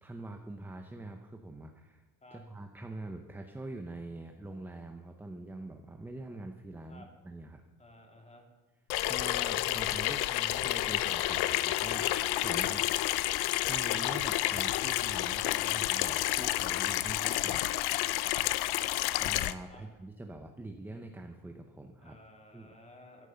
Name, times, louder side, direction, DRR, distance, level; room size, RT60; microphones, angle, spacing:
voice 1, 0.0-2.0 2.3-7.6 9.1-12.9 13.6-17.6 19.2-22.2 22.5-22.8, right 2 dB, 5° right, 4 dB, 0.8 m, -44 dB
voice 2, 7.8-8.5 19.7-19.9 22.0-23.3, left 1 dB, 20° left, 2 dB, 2.9 m, -54 dB
Water tap faucet / Sink (filling or washing), 8.9-19.5, left 16 dB, 90° left, 0.7 m, -30 dB
14.5 x 11.0 x 6.9 m, 1.2 s
cardioid pair, 150°, 37 cm